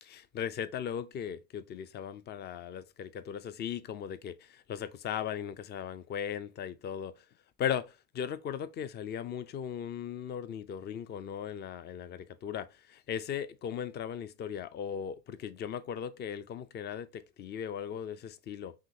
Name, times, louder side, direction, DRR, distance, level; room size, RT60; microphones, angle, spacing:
voice 1, 0.0-7.2 7.6-18.7, left 8 dB, 25° left, 0.3 m, -38 dB
5.8 x 2.8 x 2.6 m
hypercardioid pair, 90°, 48 cm